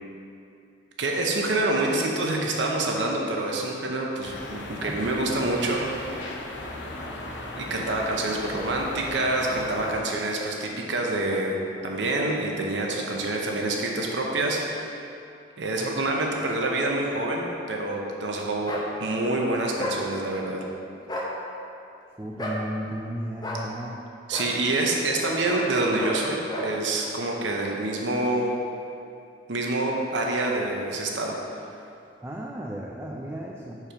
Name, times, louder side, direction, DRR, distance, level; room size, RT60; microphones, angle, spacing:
voice 1, 1.0-6.4 7.6-14.9 15.6-18.7 19.0-20.6 24.3-28.5 29.5-31.3, right 2 dB, 75° right, 0 dB, 0.8 m, -27 dB
sound 1, 4.2-10.0, left 1 dB, 75° left, 0.7 m, -37 dB
sound 2, 18.7-18.9 19.8-20.0 21.0-21.3 22.4-22.6 23.4-23.6 24.3-24.5 25.5-25.7 26.0-26.2 26.5-26.7, left 1 dB, 20° left, 0.7 m, -32 dB
voice 2, 22.2-24.0 32.2-33.8, equal, 15° right, -2 dB, 0.3 m, -34 dB
5.1 x 4.7 x 5.7 m, 2.6 s
head